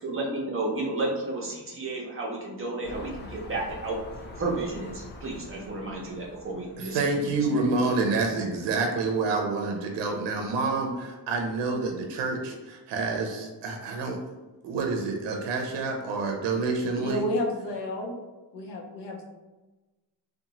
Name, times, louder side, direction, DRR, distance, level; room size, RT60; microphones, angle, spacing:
voice 1, 0.0-4.0 4.4-7.1, right 2 dB, 30° right, -3 dB, 0.6 m, -32 dB
sound 1, 2.8-7.8 8.4-8.5, left 1 dB, 25° left, 0.4 m, -45 dB
Laughter, 6.4-11.3, equal, ahead, 0.9 m, -46 dB
voice 2, 6.8-14.2 14.6-17.3, right 3 dB, 85° right, 2 dB, 0.5 m, -28 dB
voice 3, 16.9-18.2 18.5-19.2, left 1 dB, 80° left, 1 dB, 0.7 m, -31 dB
2.7 x 2.2 x 2.8 m, 1.1 s
cardioid pair, 95°, 41 cm